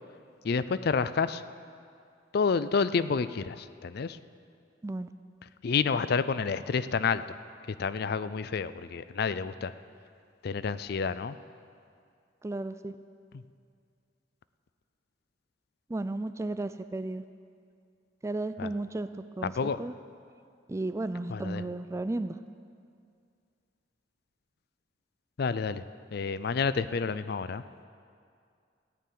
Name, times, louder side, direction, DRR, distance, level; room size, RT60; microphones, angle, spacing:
voice 1, 0.4-1.4 2.3-4.2 5.6-7.2 7.8-9.7 10.4-11.4 13.3-13.4 18.6-18.7 19.4-19.8 21.3-21.6 25.4-25.8 26.1-27.6, left 5 dB, 55° left, 14 dB, 0.4 m, -29 dB
voice 2, 12.4-12.9 15.9-17.2 18.2-19.1 19.4-19.9 20.7-22.4, right 2 dB, 15° right, 12 dB, 0.3 m, -34 dB
15.5 x 6.9 x 9.1 m, 2.3 s
head